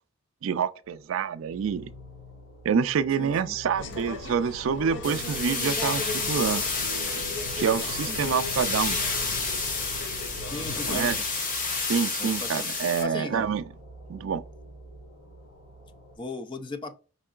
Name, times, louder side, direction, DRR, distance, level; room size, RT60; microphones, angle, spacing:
voice 1, 0.4-1.9 2.6-6.6 7.6-9.0 10.9-11.2 11.9-13.6 14.1-14.4, right 7 dB, 75° right, 0.3 m, -27 dB
sound 1, 0.8-16.2, equal, 90° left, 1.6 m, -48 dB
voice 2, 3.2-3.6 8.1-8.2 10.5-11.3 12.2-12.7 13.0-13.5 16.2-17.0, left 2 dB, 25° left, 0.4 m, -37 dB
sound 2, 3.8-11.2, left 2 dB, 60° left, 0.7 m, -37 dB
sound 3, 5.0-13.0, left 4 dB, 40° left, 1.0 m, -30 dB
5.2 x 3.7 x 2.3 m
head